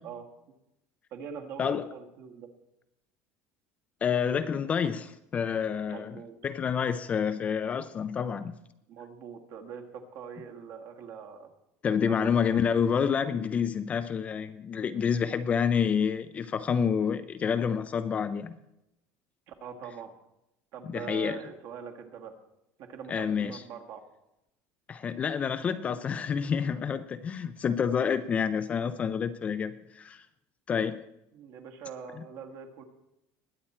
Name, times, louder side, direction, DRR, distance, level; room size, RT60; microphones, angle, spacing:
voice 1, 1.1-2.5 5.9-6.3 8.9-11.5 12.0-12.9 19.5-20.1 20.7-22.3 22.8-24.0 31.3-32.8, right 7 dB, 45° right, 1.7 m, -43 dB
voice 2, 4.0-8.6 11.8-18.6 20.8-21.4 23.1-23.6 24.9-30.3 30.7-31.0, left 7 dB, 20° left, 0.4 m, -28 dB
20.5 x 8.7 x 4.3 m
cardioid pair, 175°, 7 cm